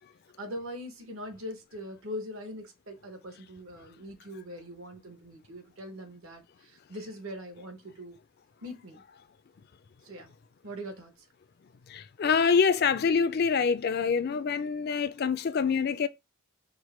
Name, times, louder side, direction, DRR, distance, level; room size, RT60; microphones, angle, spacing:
voice 1, 0.4-8.2 8.6-9.0 10.0-10.3 10.6-11.1, equal, 70° right, 1.2 m, -41 dB
voice 2, 11.9-16.1, left 6 dB, 45° left, 0.3 m, -25 dB
4.7 x 2.2 x 4.2 m
head